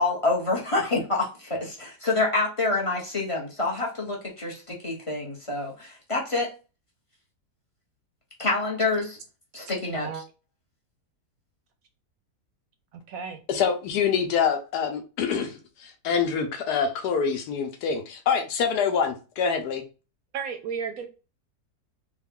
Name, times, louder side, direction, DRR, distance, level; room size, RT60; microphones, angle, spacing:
voice 1, 0.0-6.5 8.4-9.2 9.5-10.1, left 2 dB, 30° left, 0.6 m, -27 dB
voice 2, 12.9-13.4 20.3-21.1, right 6 dB, 70° right, 0.9 m, -33 dB
voice 3, 13.5-19.8, left 6 dB, 75° left, 1.2 m, -26 dB
3.6 x 2.3 x 3.5 m
omnidirectional pair, 1.8 m